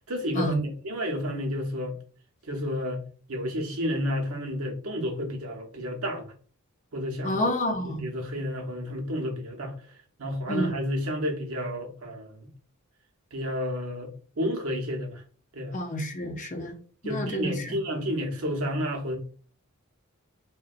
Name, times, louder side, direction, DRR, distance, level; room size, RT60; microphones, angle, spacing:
voice 1, 0.1-2.0 2.4-3.0 3.3-6.3 6.9-7.4 7.8-9.7 10.2-12.5 13.3-15.2 15.5-15.8 17.0-19.2, equal, 75° right, 0.8 m, -31 dB
voice 2, 7.2-8.0 10.5-10.7 15.7-16.7 17.0-17.8, equal, 35° left, 0.6 m, -29 dB
3.8 x 2.1 x 2.4 m
head